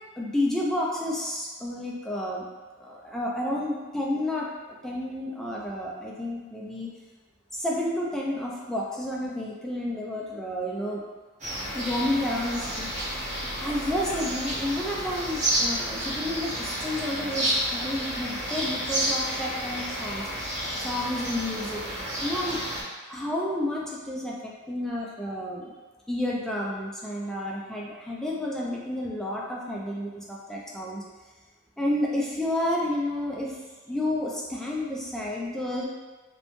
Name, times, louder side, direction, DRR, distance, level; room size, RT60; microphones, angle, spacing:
voice 1, 0.2-2.5 2.8-6.9 7.5-11.0 11.7-12.9 13.6-20.3 20.7-21.8 22.2-22.6 23.1-25.7 26.1-31.0 31.8-33.6 33.9-35.9, left 1 dB, ahead, -4 dB, 0.3 m, -30 dB
sound 1, 11.4-22.8, equal, 35° right, 0.8 m, -31 dB
3.0 x 2.1 x 2.5 m, 1.3 s
head